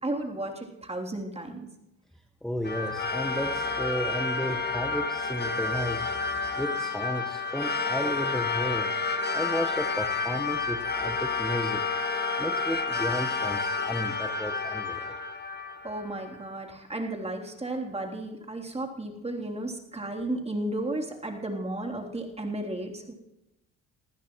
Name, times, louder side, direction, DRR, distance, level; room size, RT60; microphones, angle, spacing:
voice 1, 0.0-1.7 15.8-23.1, right 1 dB, 20° right, 0 dB, 3.3 m, -33 dB
voice 2, 2.4-6.0 6.6-8.9 9.3-11.8 12.4-15.1, equal, ahead, 5 dB, 1.2 m, -33 dB
sound 1, 2.6-16.4, left 4 dB, 30° left, 1.7 m, -30 dB
23.0 x 15.0 x 3.1 m, 0.92 s
supercardioid pair, 70°, 35 cm